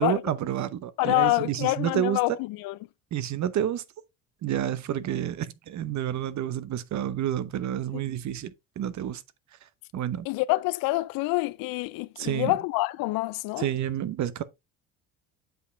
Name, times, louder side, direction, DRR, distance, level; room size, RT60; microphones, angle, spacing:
voice 1, 0.0-2.2 3.1-3.8 4.4-9.2 9.9-10.3 12.2-12.5 13.6-14.4, right 11 dB, 50° right, 0.9 m, -29 dB
voice 2, 1.0-2.7 7.9-8.0 10.3-13.7, left 20 dB, 70° left, 0.6 m, -26 dB
8.0 x 4.9 x 3.3 m
supercardioid pair, 75°, 37 cm